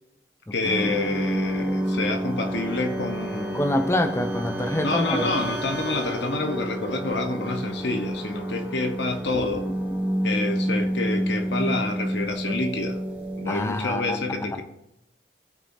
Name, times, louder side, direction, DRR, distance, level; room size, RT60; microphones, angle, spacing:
voice 1, 0.5-3.6 4.8-9.7 10.2-13.0 13.4-14.6, left 2 dB, 85° left, 6 dB, 1.1 m, -28 dB
sound 1, 0.6-13.8, right 1 dB, 10° right, 1.4 m, -29 dB
voice 2, 3.5-5.3 13.5-14.6, left 1 dB, 15° left, 7 dB, 0.7 m, -26 dB
16.5 x 5.7 x 2.7 m, 0.85 s
head